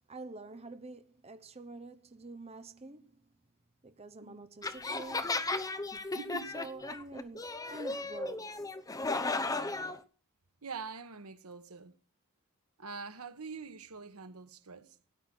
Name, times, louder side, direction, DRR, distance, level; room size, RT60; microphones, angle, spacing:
voice 1, 0.1-3.2 3.8-5.4 6.5-8.7, right 2 dB, 30° right, 0.9 m, -47 dB
sound 1, 4.6-10.0, left 3 dB, 15° left, 0.9 m, -35 dB
voice 2, 6.1-6.5 10.6-11.9 12.8-15.0, right 5 dB, 85° right, 1.3 m, -44 dB
17.0 x 10.0 x 6.2 m
head